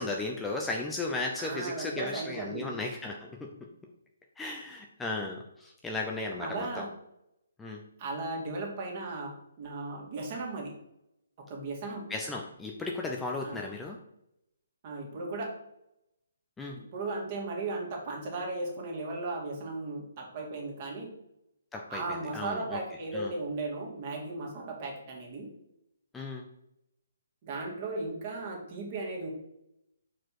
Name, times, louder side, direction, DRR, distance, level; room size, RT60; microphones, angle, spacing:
voice 1, 0.0-3.5 4.4-6.9 7.6-7.8 12.1-14.0 16.6-16.8 21.7-22.0 22.3-22.8 23.1-23.3 26.1-26.4, left 2 dB, 10° left, 0 dB, 0.6 m, -35 dB
voice 2, 1.4-2.7 6.4-6.9 8.0-10.7 11.4-12.1 13.4-13.6 14.8-15.5 16.7-21.1 21.9-25.5 27.4-29.3, right 3 dB, 40° right, -1 dB, 2.3 m, -36 dB
4.8 x 4.5 x 6.0 m, 0.82 s
figure-of-eight pair, 140°, 0 cm